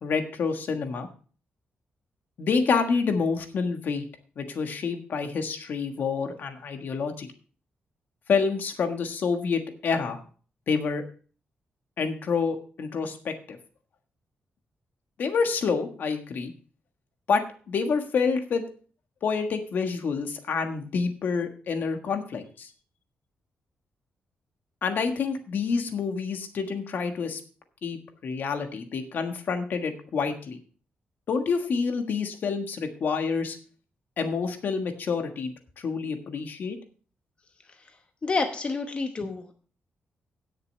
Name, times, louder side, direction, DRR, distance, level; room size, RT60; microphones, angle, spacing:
voice 1, 0.0-1.1 2.4-4.0 4.4-7.3 8.3-10.2 10.7-11.0 12.0-13.6 15.2-16.5 17.3-18.6 19.2-22.7 24.8-27.4 27.8-30.6 31.3-33.6 34.2-36.8, left 5 dB, 60° left, 6 dB, 1.4 m, -28 dB
voice 2, 38.2-39.5, left 3 dB, 30° left, 5 dB, 1.0 m, -28 dB
17.5 x 6.8 x 3.2 m, 0.40 s
wide cardioid pair, 135°, 4 cm